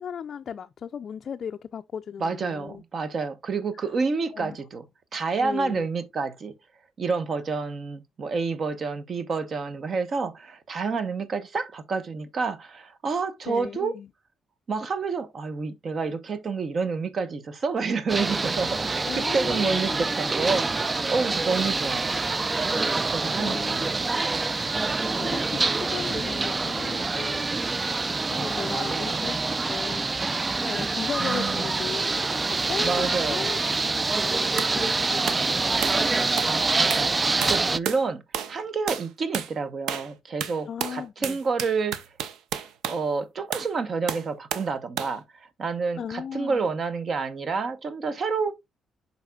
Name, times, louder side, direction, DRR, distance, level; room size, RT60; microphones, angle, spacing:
voice 1, 0.0-2.8 4.3-4.6 5.4-5.9 13.5-14.1 19.0-20.1 23.4-24.0 25.2-27.4 28.2-30.1 30.7-33.6 33.9-36.2 40.7-41.4 46.0-46.7, left 7 dB, 55° left, 0.3 m, -36 dB
voice 2, 2.2-4.8 5.1-6.5 7.0-13.9 14.7-22.2 22.9-23.8 28.6-29.2 31.2-31.6 32.8-33.5 36.4-38.2 38.5-42.0 42.9-45.2 45.6-48.5, right 4 dB, 50° right, 1.0 m, -29 dB
sound 1, 18.1-37.8, right 3 dB, 25° right, 0.3 m, -26 dB
sound 2, 34.6-34.8 35.3-35.5 35.8-36.1 36.4-36.6 36.9-37.1 37.4-38.0 38.3-38.6 38.9-39.1 39.3-39.5 39.9-40.1 40.4-43.0 43.5-43.7 44.1-44.7 45.0-45.2, right 8 dB, 85° right, 0.6 m, -32 dB
11.5 x 4.1 x 2.3 m
cardioid pair, 90°, 0 cm